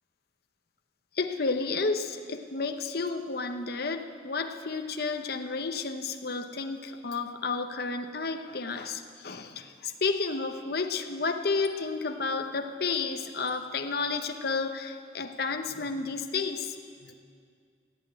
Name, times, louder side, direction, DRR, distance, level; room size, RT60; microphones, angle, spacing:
voice 1, 1.2-16.7 17.0-17.1, left 4 dB, 55° left, 6 dB, 0.8 m, -31 dB
15.0 x 8.9 x 9.0 m, 2.2 s
head